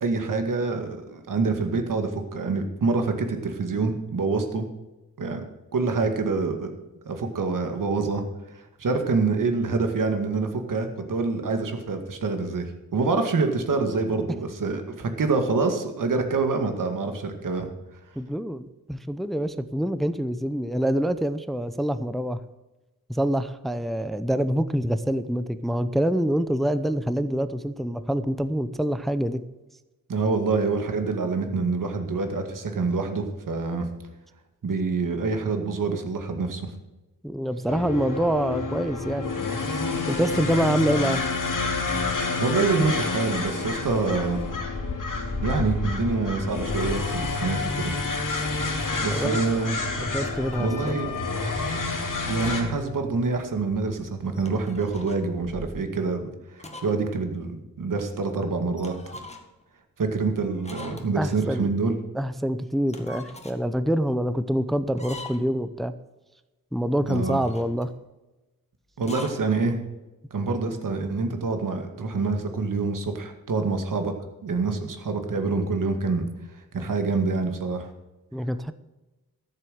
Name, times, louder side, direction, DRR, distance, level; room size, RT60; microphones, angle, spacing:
voice 1, 0.0-4.7 5.2-5.4 5.7-6.7 7.1-8.2 8.5-12.7 12.9-17.7 30.1-33.9 34.6-36.7 42.4-44.4 45.4-47.9 49.0-49.8 50.6-51.1 52.3-59.2 60.0-62.0 67.0-67.4 69.0-69.8 70.3-74.1 74.4-76.3 76.5-77.9, right 4 dB, 65° right, 6 dB, 2.0 m, -26 dB
voice 2, 18.2-22.4 23.1-29.4 37.2-39.3 39.7-39.8 40.1-41.2 49.1-49.4 50.0-51.0 61.2-61.7 62.1-65.9 66.7-67.9 78.3-78.7, equal, ahead, 12 dB, 0.6 m, -26 dB
sound 1, 37.7-52.6, left 3 dB, 60° left, 2.6 m, -29 dB
sound 2, 45.4-46.0 46.3-46.9 47.2-47.7 48.0-48.5 48.8-50.3 51.0-52.6 52.9-55.0 55.4-55.7, right 2 dB, 80° right, 3.5 m, -42 dB
sound 3, 50.2-51.0 52.2-52.9 53.2-53.3 54.2-55.3 56.6-57.1 57.3-57.4 58.8-59.6 60.6-61.4 62.7-63.6 64.9-65.6 67.0-67.9 69.0-69.4, left 2 dB, 20° left, 1.8 m, -43 dB
13.5 x 7.7 x 6.5 m, 1.1 s
wide cardioid pair, 105°, 35 cm